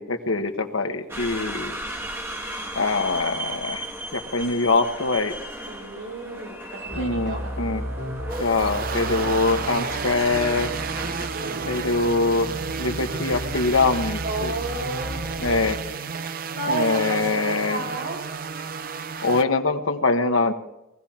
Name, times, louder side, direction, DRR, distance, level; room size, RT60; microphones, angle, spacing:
voice 1, 0.0-1.7 2.7-3.8 4.1-5.3 6.9-7.8 8.4-10.7 11.7-12.5 12.8-14.5 15.4-15.8 16.7-17.8 19.2-20.5, left 3 dB, 85° left, 5 dB, 1.3 m, -23 dB
voice 2, 0.6-1.4 5.7-7.5 11.3-11.8 14.2-18.2, right 2 dB, 70° right, -1 dB, 5.5 m, -33 dB
sound 1, 1.1-11.3, right 1 dB, 10° right, 1.4 m, -36 dB
sound 2, 6.9-15.7, equal, 85° right, 4.1 m, -34 dB
sound 3, 8.3-19.4, right 5 dB, 45° right, 0.6 m, -32 dB
20.0 x 15.5 x 4.4 m, 0.90 s
head